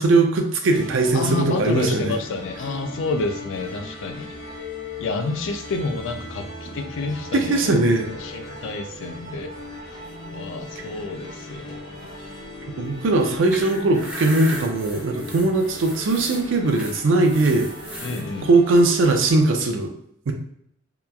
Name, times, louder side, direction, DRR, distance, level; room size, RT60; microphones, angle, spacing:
voice 1, 0.0-2.2 7.3-8.1 12.8-17.7 18.4-19.9 20.3-20.4, right 2 dB, 65° right, 4 dB, 0.4 m, -20 dB
sound 1, 0.7-19.4, left 2 dB, 80° left, 0.9 m, -38 dB
voice 2, 1.1-4.3 5.0-9.5 10.3-11.9 13.3-13.4 18.0-18.5, left 3 dB, 65° left, 7 dB, 0.4 m, -29 dB
sound 2, 13.2-18.2, right 1 dB, 5° right, 0.5 m, -37 dB
2.9 x 2.3 x 2.2 m, 0.69 s
head